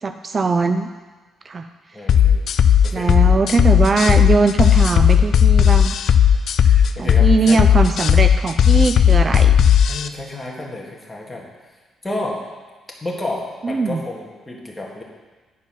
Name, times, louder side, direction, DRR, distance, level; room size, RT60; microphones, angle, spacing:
voice 1, 0.0-0.9 1.4-1.7 2.9-5.9 7.0-9.6 13.6-14.0, right 4 dB, 35° right, 8 dB, 0.4 m, -20 dB
voice 2, 1.9-2.5 2.8-3.1 6.6-7.6 9.9-11.5 12.0-12.4 13.0-15.0, left 2 dB, 15° left, -2 dB, 1.8 m, -31 dB
sound 1, 2.1-10.1, left 9 dB, 65° left, 0.4 m, -14 dB
9.2 x 4.5 x 5.8 m, 1.3 s
cardioid pair, 90°, 0 cm